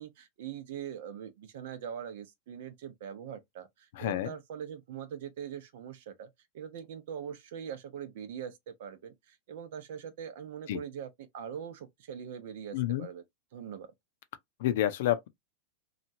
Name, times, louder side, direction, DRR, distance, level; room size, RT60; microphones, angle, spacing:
voice 1, 0.0-13.2 13.5-13.9, right 8 dB, 70° right, 0.7 m, -42 dB
voice 2, 4.0-4.3 10.7-10.8 12.7-13.1 14.6-15.3, left 13 dB, 70° left, 0.6 m, -29 dB
2.9 x 2.4 x 2.7 m
hypercardioid pair, 110°, 0 cm